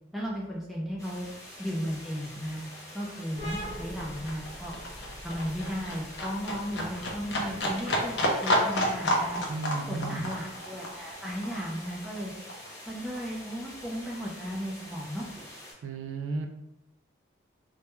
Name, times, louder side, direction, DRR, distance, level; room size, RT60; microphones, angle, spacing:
voice 1, 0.1-1.3 1.6-2.6 2.9-4.7 5.2-9.4 9.9-12.3 12.9-15.3, equal, ahead, -4 dB, 0.4 m, -35 dB
sound 1, 1.0-15.7, left 1 dB, 20° left, 0.7 m, -46 dB
Livestock farm animals working animals, 1.5-1.6 1.8-12.8 13.2-14.2 14.5-14.6, equal, 60° left, 0.5 m, -31 dB
sound 2, 3.4-10.7, equal, 30° right, 1.0 m, -45 dB
voice 2, 9.5-10.3 15.8-16.5, right 3 dB, 80° right, 6 dB, 0.3 m, -34 dB
2.2 x 2.2 x 3.0 m, 0.89 s
head